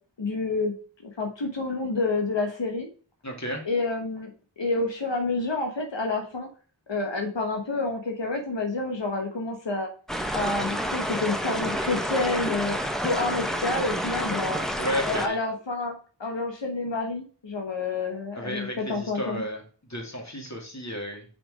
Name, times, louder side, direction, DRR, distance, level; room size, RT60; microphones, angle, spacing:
voice 1, 0.2-0.7 1.2-2.9 3.6-4.3 4.6-6.5 6.9-9.9 10.3-12.7 13.0-14.6 15.1-15.9 16.2-19.4, left 3 dB, 85° left, 2 dB, 1.3 m, -28 dB
voice 2, 3.2-3.6 14.3-14.4 14.8-15.4 18.3-21.3, equal, 40° left, 1 dB, 2.6 m, -33 dB
sound 1, 10.1-15.3, equal, ahead, 1.1 m, -29 dB
5.9 x 5.1 x 4.9 m, 0.40 s
wide cardioid pair, 50°, 43 cm